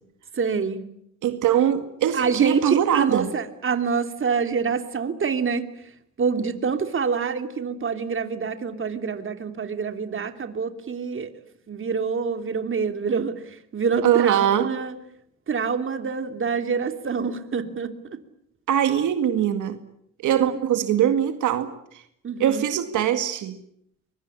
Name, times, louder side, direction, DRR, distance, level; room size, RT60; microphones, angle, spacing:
voice 1, 0.4-0.8 2.1-5.6 6.2-11.3 11.7-13.3 13.7-14.9 15.5-18.2 20.6-20.7 22.2-22.7, right 5 dB, 45° right, 2.9 m, -26 dB
voice 2, 1.2-3.3 14.0-14.7 18.7-19.8 20.2-22.0 22.4-23.5, right 10 dB, 80° right, 2.1 m, -22 dB
24.0 x 22.5 x 9.8 m
cardioid pair, 90°, 30 cm